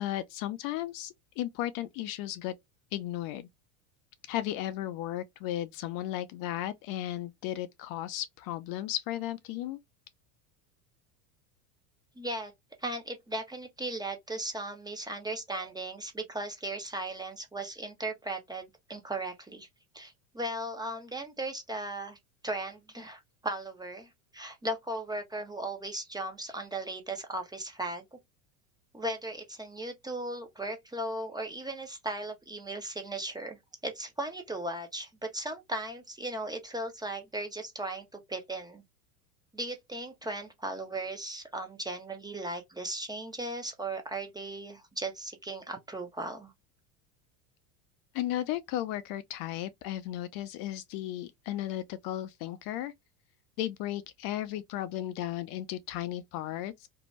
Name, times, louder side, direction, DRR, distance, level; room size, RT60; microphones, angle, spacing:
voice 1, 0.0-2.5 2.9-3.5 4.3-9.8 48.1-52.9 53.6-56.9, left 13 dB, 50° left, 0.5 m, -35 dB
voice 2, 12.2-12.5 12.8-19.7 19.9-22.2 22.4-28.0 28.9-38.8 39.5-46.5, right 1 dB, 10° right, 0.5 m, -37 dB
2.6 x 2.1 x 3.0 m
supercardioid pair, 100°, 45 cm